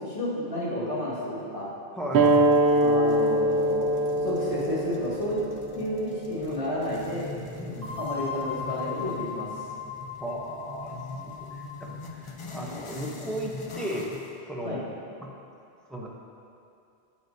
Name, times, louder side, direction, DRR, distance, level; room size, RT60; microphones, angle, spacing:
voice 1, 0.0-1.7 2.7-5.4 5.7-7.3 8.0-9.5 14.6-14.8, left 1 dB, 55° left, -9 dB, 2.3 m, -31 dB
voice 2, 1.9-2.6 7.6-8.0 10.2-11.0 11.2-14.2 14.5-14.8 15.2-15.3 15.9-16.1, equal, ahead, -3 dB, 0.7 m, -35 dB
sound 1, 2.1-7.3, right 1 dB, 90° right, 0.9 m, -24 dB
sound 2, 2.2-14.3, left 2 dB, 40° left, 0.6 m, -43 dB
sound 3, 4.3-6.6 7.8-12.0, left 7 dB, 35° right, 1.7 m, -39 dB
9.5 x 7.7 x 2.7 m, 2.6 s
omnidirectional pair, 1.0 m